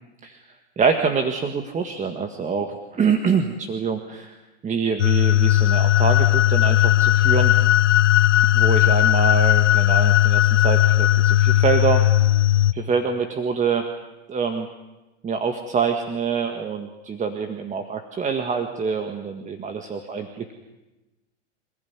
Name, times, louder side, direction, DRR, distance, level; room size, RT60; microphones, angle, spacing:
voice 1, 0.8-4.3 4.6-7.5 8.5-12.0 12.7-13.8 14.3-14.7 15.2-20.5, right 6 dB, 20° right, 6 dB, 1.8 m, -25 dB
sound 1, 5.0-12.7, left 13 dB, 85° left, 0.7 m, -17 dB
27.0 x 15.5 x 9.7 m, 1.0 s
hypercardioid pair, 115°, 35 cm